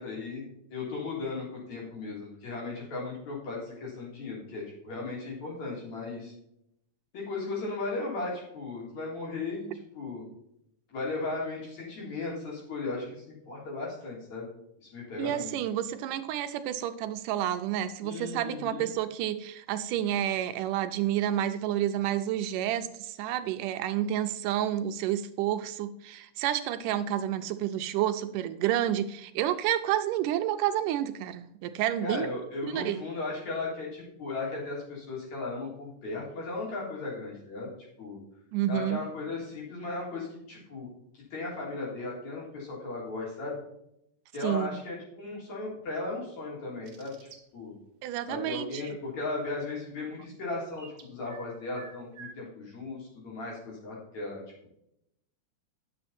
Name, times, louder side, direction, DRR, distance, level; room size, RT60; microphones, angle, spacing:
voice 1, 0.0-6.3 7.1-9.7 9.9-10.3 10.9-14.5 14.9-15.5 18.0-18.9 32.0-37.7 38.0-38.2 38.7-40.9 41.3-43.6 44.3-47.2 47.5-47.7 48.3-54.4, left 3 dB, 55° left, -3 dB, 4.8 m, -36 dB
voice 2, 15.2-32.3 32.6-33.0 38.5-39.0 44.4-44.8 48.0-49.0, right 11 dB, 80° right, 9 dB, 2.1 m, -30 dB
sound 1, 46.9-47.4 50.8-51.5 51.7-52.3, right 5 dB, 55° right, 2.1 m, -49 dB
9.8 x 7.0 x 4.3 m, 0.78 s
omnidirectional pair, 3.8 m